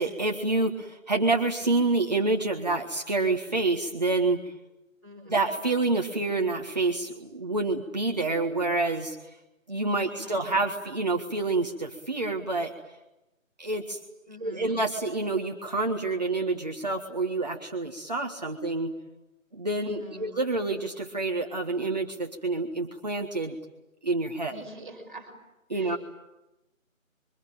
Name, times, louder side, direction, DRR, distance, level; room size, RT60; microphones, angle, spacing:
voice 1, 0.0-4.5 5.3-9.4 9.7-12.7 13.6-14.0 14.4-18.9 19.5-23.6 24.0-24.6 25.7-26.0, right 3 dB, 30° right, 2 dB, 1.6 m, -28 dB
voice 2, 5.0-5.6 10.1-10.6 14.3-14.8 19.8-20.3 24.5-25.3 25.7-26.0, equal, ahead, -9 dB, 3.6 m, -44 dB
26.5 x 24.0 x 9.1 m, 0.97 s
figure-of-eight pair, 165°, 40 cm